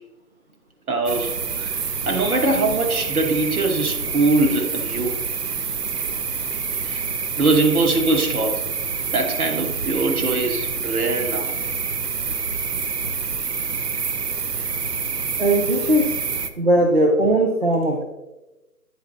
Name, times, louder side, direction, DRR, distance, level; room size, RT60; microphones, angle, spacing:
voice 1, 0.9-1.7 2.1-5.1 6.8-7.0 7.4-8.6 9.1-11.5, right 2 dB, 65° right, 4 dB, 1.4 m, -22 dB
sound 1, 1.1-16.5, right 5 dB, 85° right, 0.9 m, -27 dB
voice 2, 15.4-16.2 16.6-18.0, right 1 dB, 45° right, 3 dB, 0.5 m, -19 dB
9.5 x 4.1 x 3.9 m, 1.0 s
hypercardioid pair, 175°, 46 cm